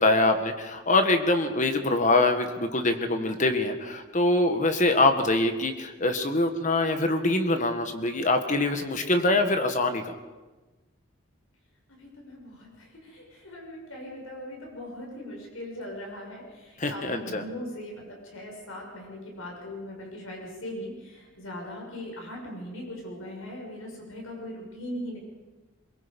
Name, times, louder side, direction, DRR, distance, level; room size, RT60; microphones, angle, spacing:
voice 1, 0.0-10.1 16.8-17.4, left 2 dB, 40° left, 7 dB, 1.7 m, -24 dB
voice 2, 12.0-25.2, left 1 dB, 90° left, 0 dB, 6.4 m, -40 dB
22.5 x 22.0 x 5.4 m, 1.2 s
head